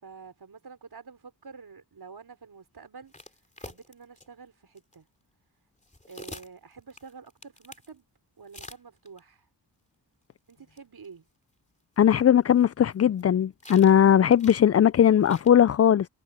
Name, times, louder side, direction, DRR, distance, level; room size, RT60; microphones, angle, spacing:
voice 1, 0.0-3.2 3.6-5.1 6.1-8.1 8.4-9.5 10.5-11.3, right 5 dB, 60° right, 4.8 m, -48 dB
sound 1, 3.1-4.3 4.8-5.0 5.8-7.9 8.5-9.2 10.5-10.6 10.8-10.9 11.0-11.1 12.0-13.2 13.6-14.0 14.3-14.6 15.2-15.5, left 2 dB, 15° left, 2.7 m, -46 dB
voice 2, 12.0-16.1, left 9 dB, 40° left, 0.4 m, -19 dB
cardioid pair, 55°, 42 cm